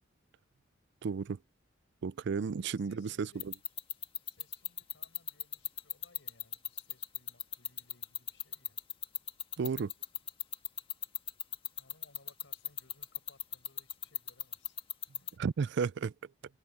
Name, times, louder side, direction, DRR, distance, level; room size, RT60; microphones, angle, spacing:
voice 1, 1.0-1.4 2.0-3.5 9.6-9.9 15.4-16.1, right 5 dB, 60° right, 0.4 m, -33 dB
voice 2, 2.3-3.5 4.2-8.8 11.8-14.9 15.2-15.3, left 2 dB, 70° left, 6.9 m, -65 dB
sound 1, 3.4-15.3, left 9 dB, 30° left, 1.7 m, -36 dB
head